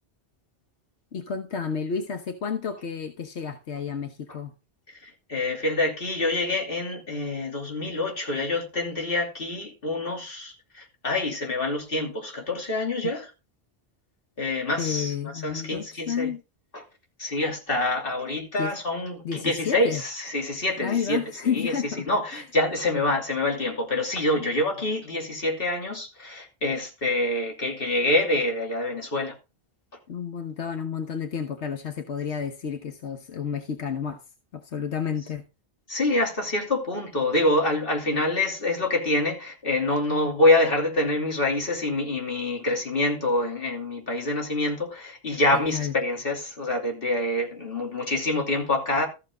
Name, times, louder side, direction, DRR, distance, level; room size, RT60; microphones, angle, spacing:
voice 1, 1.1-4.5 14.8-16.4 18.6-18.7 19.2-20.0 20.8-22.1 22.3-22.4 24.4-24.5 30.1-34.2 34.5-35.5 45.5-45.9, left 7 dB, 85° left, 1.3 m, -31 dB
voice 2, 5.0-13.3 14.4-16.3 16.7-16.8 17.2-21.2 21.5-21.7 22.1-29.3 35.9-49.1, left 2 dB, 55° left, 3.0 m, -26 dB
14.0 x 7.0 x 3.7 m
omnidirectional pair, 1.1 m